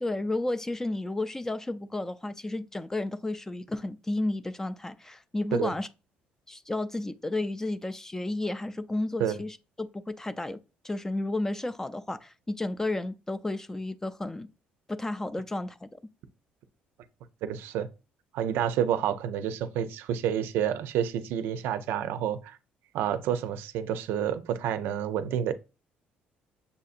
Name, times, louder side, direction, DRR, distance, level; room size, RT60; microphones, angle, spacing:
voice 1, 0.0-5.9 6.5-10.6 10.8-14.5 14.9-16.0, left 2 dB, 15° left, 0.3 m, -32 dB
voice 2, 17.4-17.9 18.3-22.6 22.9-25.5, right 9 dB, 80° right, 0.4 m, -29 dB
6.7 x 2.7 x 2.4 m
cardioid pair, 105°, 4 cm